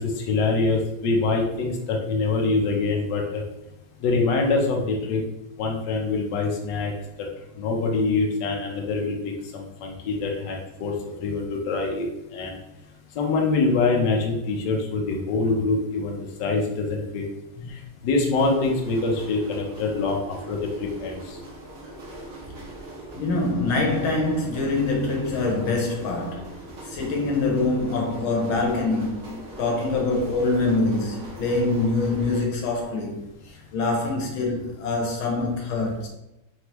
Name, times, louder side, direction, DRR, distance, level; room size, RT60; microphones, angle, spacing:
voice 1, 0.0-3.4 4.0-5.2 5.6-6.9 7.6-9.2 9.5-10.9 11.2-12.1 12.3-12.6 13.2-17.2 17.7-21.4, left 3 dB, 70° left, 1.3 m, -24 dB
sound 1, 18.3-32.4, right 2 dB, 50° right, 1.1 m, -41 dB
voice 2, 23.1-26.5 26.8-36.1, left 3 dB, 85° left, 1.7 m, -25 dB
4.3 x 3.2 x 2.9 m
omnidirectional pair, 2.2 m